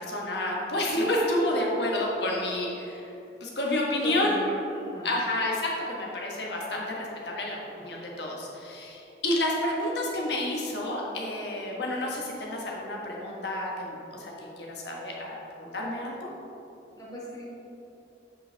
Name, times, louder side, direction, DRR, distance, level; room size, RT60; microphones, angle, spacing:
voice 1, 0.0-3.1 3.4-4.4 5.0-16.3, left 1 dB, 70° left, -2 dB, 1.3 m, -30 dB
voice 2, 4.0-5.1 17.0-17.5, equal, 20° left, -6 dB, 1.4 m, -38 dB
8.6 x 5.3 x 3.4 m, 2.9 s
head